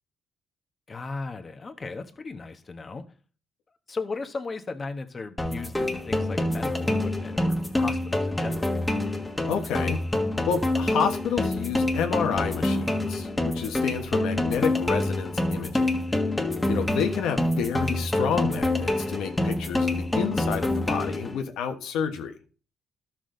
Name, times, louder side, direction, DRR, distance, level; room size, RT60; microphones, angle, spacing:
voice 1, 0.9-3.1 3.9-8.7, left 3 dB, 35° left, 1.2 m, -36 dB
sound 1, 5.4-21.4, left 1 dB, 10° left, 1.5 m, -26 dB
voice 2, 9.5-10.0 10.5-16.0 16.7-22.3, left 7 dB, 85° left, 1.3 m, -29 dB
12.5 x 6.1 x 3.9 m
cardioid pair, 90°, 0 cm